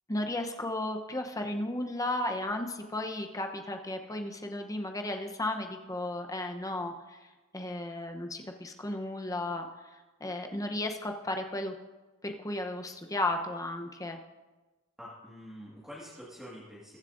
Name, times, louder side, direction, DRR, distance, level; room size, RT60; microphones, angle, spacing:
voice 1, 0.1-9.7 9.9-11.7 12.2-14.2, left 1 dB, 15° left, 4 dB, 0.8 m, -34 dB
voice 2, 15.0-17.0, equal, 5° right, -8 dB, 1.7 m, -46 dB
22.0 x 7.3 x 2.6 m, 1.2 s
head